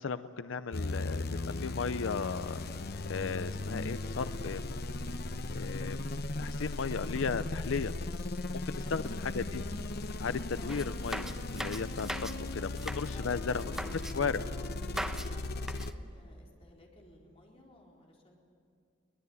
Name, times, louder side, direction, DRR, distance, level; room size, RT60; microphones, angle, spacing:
voice 1, 0.0-2.6 3.1-4.7 5.5-7.9 8.5-9.6 10.2-13.6 14.1-14.4, left 5 dB, 85° left, 12 dB, 0.6 m, -35 dB
sound 1, 0.7-15.9, left 2 dB, 55° left, 0.8 m, -37 dB
voice 2, 8.8-9.2 10.6-10.9 13.1-14.3 14.6-18.3, left 1 dB, 30° left, -2 dB, 4.3 m, -56 dB
sound 2, 10.7-12.4 12.7-13.1 13.6-14.1 14.8-15.3 15.6-15.9, right 1 dB, ahead, 0.8 m, -39 dB
23.0 x 20.0 x 9.6 m, 2.4 s
head